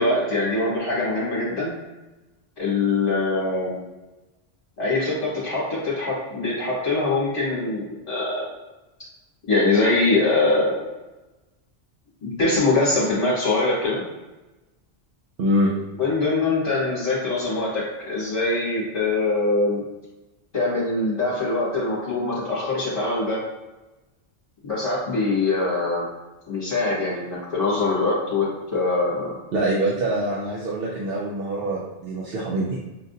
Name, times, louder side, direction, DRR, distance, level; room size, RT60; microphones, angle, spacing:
voice 1, 0.0-1.7 2.6-3.8 4.8-8.5 9.5-10.7 12.2-14.0 16.0-19.8 20.5-23.4 24.6-26.1 26.5-29.4, left 3 dB, 40° left, -7 dB, 1.2 m, -23 dB
voice 2, 15.4-15.7 29.5-32.8, right 1 dB, 65° right, -5 dB, 0.8 m, -24 dB
5.7 x 2.6 x 2.6 m, 1.1 s
omnidirectional pair, 1.1 m